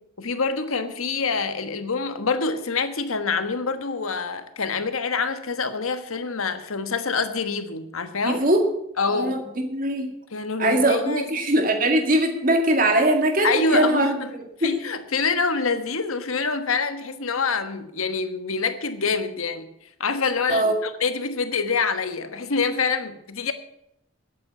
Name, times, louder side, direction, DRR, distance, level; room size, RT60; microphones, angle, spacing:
voice 1, 0.2-8.4 9.0-9.4 10.3-11.3 13.4-14.3 14.6-19.7 20.0-23.5, left 4 dB, 85° left, 9 dB, 1.3 m, -26 dB
voice 2, 8.2-8.6 9.1-10.1 10.6-14.8 20.5-20.8, right 1 dB, 40° right, 4 dB, 2.0 m, -21 dB
11.0 x 8.4 x 9.2 m, 0.80 s
head